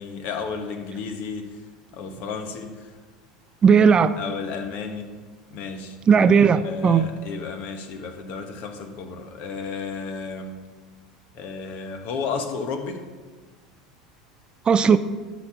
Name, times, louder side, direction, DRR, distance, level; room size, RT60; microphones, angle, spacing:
voice 1, 0.0-1.4 1.9-2.9 4.2-5.1 5.5-6.0 6.6-10.6 11.3-13.0, left 5 dB, 55° left, 6 dB, 1.3 m, -32 dB
voice 2, 3.6-4.1 6.1-7.1 14.7-15.0, right 6 dB, 30° right, 13 dB, 0.4 m, -16 dB
11.5 x 4.2 x 7.2 m, 1.4 s
hypercardioid pair, 80°, 3 cm